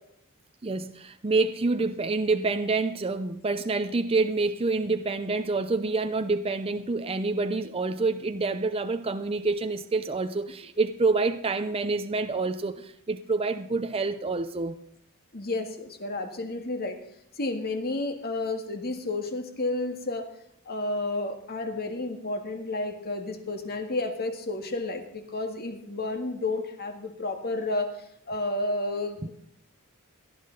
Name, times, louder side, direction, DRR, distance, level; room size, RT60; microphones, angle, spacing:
voice 1, 0.6-14.8, right 3 dB, 25° right, 8 dB, 0.6 m, -27 dB
voice 2, 15.3-17.0 17.4-20.3 20.7-29.3, left 2 dB, 45° left, 6 dB, 1.9 m, -31 dB
18.0 x 12.5 x 4.0 m, 0.69 s
head